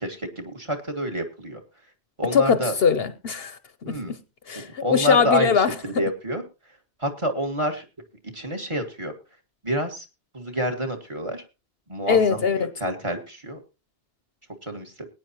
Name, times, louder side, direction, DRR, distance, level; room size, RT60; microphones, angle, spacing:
voice 1, 0.0-1.6 2.2-2.7 3.8-4.1 4.5-6.4 7.0-7.8 8.3-9.1 9.6-10.0 10.3-11.4 11.9-13.6 14.6-15.1, equal, 25° right, 1.8 m, -28 dB
voice 2, 2.3-4.2 4.5-5.7 12.1-12.7, left 6 dB, 60° left, 0.9 m, -21 dB
20.5 x 9.5 x 2.9 m
omnidirectional pair, 1.2 m